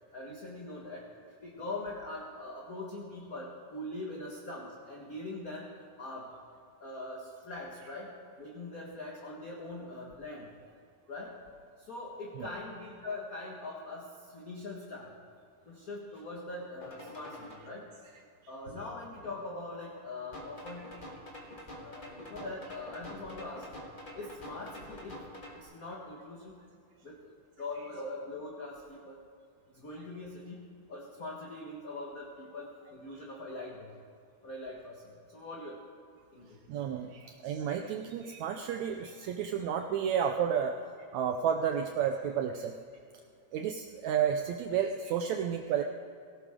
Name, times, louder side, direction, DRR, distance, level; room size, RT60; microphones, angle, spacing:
voice 1, 0.1-5.7 6.0-6.3 6.8-8.1 8.4-10.5 11.1-11.4 11.8-15.1 15.6-17.9 18.5-21.3 21.8-23.8 24.1-25.2 25.5-26.6 27.0-27.3 27.6-29.2 29.7-34.0 34.4-35.8 36.3-36.6, left 2 dB, 40° left, -2 dB, 1.4 m, -42 dB
sound 1, 16.8-17.6 20.3-25.6, left 1 dB, 20° left, 1.3 m, -46 dB
voice 2, 36.7-40.7 41.1-42.8 43.5-45.8, right 8 dB, 75° right, 5 dB, 1.8 m, -31 dB
17.5 x 17.0 x 3.7 m, 2.4 s
omnidirectional pair, 3.6 m